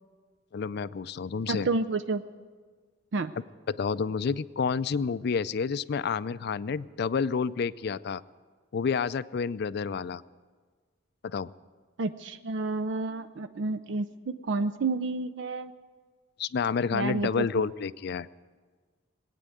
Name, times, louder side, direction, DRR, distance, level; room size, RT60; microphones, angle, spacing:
voice 1, 0.5-1.7 3.7-8.2 8.7-10.2 11.2-11.5 16.4-18.3, left 5 dB, 55° left, 17 dB, 0.4 m, -29 dB
voice 2, 1.5-2.2 3.1-3.3 12.0-15.7 16.9-17.7, right 3 dB, 65° right, 11 dB, 0.5 m, -30 dB
20.5 x 9.2 x 7.8 m, 1.5 s
head